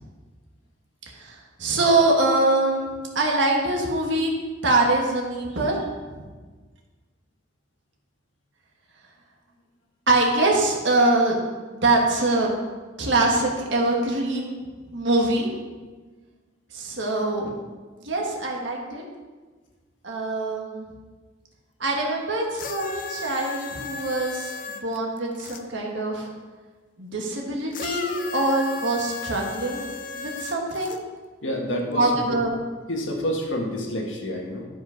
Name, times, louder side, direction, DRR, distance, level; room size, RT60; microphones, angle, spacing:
voice 1, 1.1-4.3 4.6-6.3 10.1-11.4 11.8-12.5 13.0-14.6 14.9-15.5 16.7-17.5 18.0-19.0 20.0-20.8 21.8-26.3 27.0-29.9 30.2-31.0 32.0-32.5, right 2 dB, 65° right, -1 dB, 1.7 m, -23 dB
sound 1, 22.5-25.6 27.7-31.0 31.9-32.0, left 5 dB, 45° left, 0.6 m, -35 dB
voice 2, 31.4-32.2 32.9-34.6, equal, 80° left, 1 dB, 1.7 m, -28 dB
12.5 x 5.2 x 5.2 m, 1.4 s
head